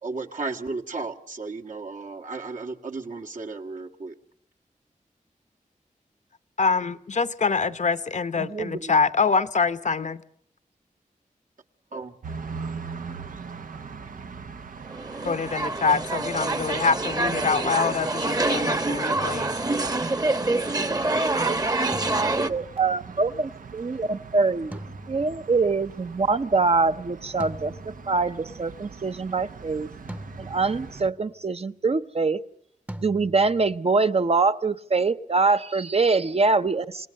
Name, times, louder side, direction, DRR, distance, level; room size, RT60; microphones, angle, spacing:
voice 1, 0.0-4.1 11.9-12.1, right 3 dB, 70° right, 1.8 m, -34 dB
voice 2, 6.6-10.2 15.2-19.5, left 5 dB, 60° left, 0.9 m, -25 dB
voice 3, 8.4-8.9 21.4-21.6 22.2-24.8 25.1-29.9 30.4-32.4 33.0-37.1, right 4 dB, 50° right, 0.8 m, -24 dB
sound 1, 12.2-31.1, right 5 dB, 90° right, 1.0 m, -41 dB
sound 2, 14.9-22.5, right 2 dB, 30° right, 1.1 m, -26 dB
sound 3, 19.2-20.2 21.9-23.1 24.7-25.9 27.4-28.6 30.1-31.2 32.9-33.8, right 1 dB, 10° right, 0.8 m, -42 dB
27.5 x 18.0 x 6.6 m
wide cardioid pair, 70°, 14 cm